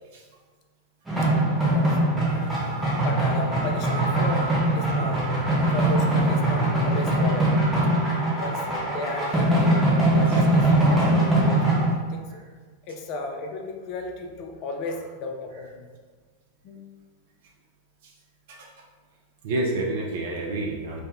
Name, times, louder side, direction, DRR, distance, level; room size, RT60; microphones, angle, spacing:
sound 1, 1.1-11.9, right 1 dB, 10° right, 0.7 m, -22 dB
voice 1, 1.6-2.0 3.0-5.3 5.7-7.6 8.4-11.6 12.1-12.4 12.9-15.8 16.6-17.0, left 2 dB, 40° left, 3 dB, 0.4 m, -35 dB
Mechanisms, 2.1-7.3, left 2 dB, 60° left, 1.0 m, -41 dB
sound 2, 3.3-10.8, right 3 dB, 90° left, 0.7 m, -41 dB
voice 2, 19.4-21.0, right 2 dB, 55° right, 0 dB, 0.4 m, -29 dB
3.3 x 2.1 x 2.4 m, 1.5 s
figure-of-eight pair, 90°, 0 cm